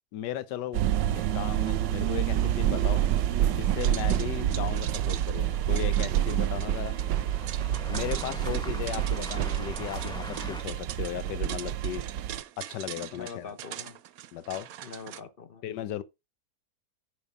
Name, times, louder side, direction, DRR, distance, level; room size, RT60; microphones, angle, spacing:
voice 1, 0.1-0.8 1.1-3.0 3.5-7.0 7.9-12.1 12.6-13.5 14.3-14.7 15.6-16.0, left 11 dB, 80° left, 1.4 m, -36 dB
sound 1, 0.7-12.4, right 11 dB, 85° right, 1.3 m, -28 dB
sound 2, 0.9-10.6, equal, 5° left, 0.8 m, -45 dB
sound 3, 3.8-15.2, right 12 dB, 65° right, 1.0 m, -42 dB
voice 2, 8.5-8.8 13.2-14.0 14.8-15.6, left 5 dB, 45° left, 0.7 m, -44 dB
9.8 x 5.0 x 5.0 m
omnidirectional pair, 1.8 m